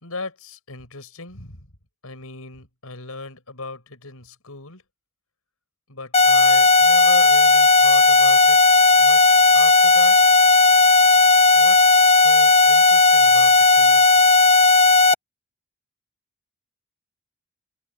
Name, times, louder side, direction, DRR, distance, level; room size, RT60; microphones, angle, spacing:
voice 1, 0.0-1.7 2.0-4.8 5.9-8.6 9.0-10.2 11.6-14.0, left 3 dB, 75° left, 5.9 m, -37 dB
sound 1, 6.1-15.1, left 3 dB, 30° left, 1.0 m, -14 dB
head